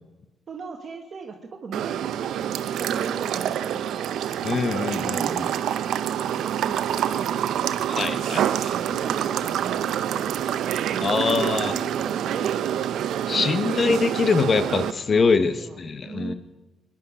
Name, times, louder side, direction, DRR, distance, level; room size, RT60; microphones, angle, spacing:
voice 1, 0.5-4.1 4.4-4.8 5.1-5.4 6.1-7.6 8.4-12.6 13.1-14.1 15.1-16.3, right 5 dB, 50° right, 3 dB, 1.3 m, -38 dB
sound 1, 1.7-14.9, right 10 dB, 75° right, 0.6 m, -27 dB
voice 2, 4.4-5.5 7.9-8.4 11.0-11.7 13.3-16.3, left 4 dB, 40° left, 11 dB, 1.0 m, -23 dB
21.5 x 10.5 x 4.9 m, 1.1 s
cardioid pair, 90°, 0 cm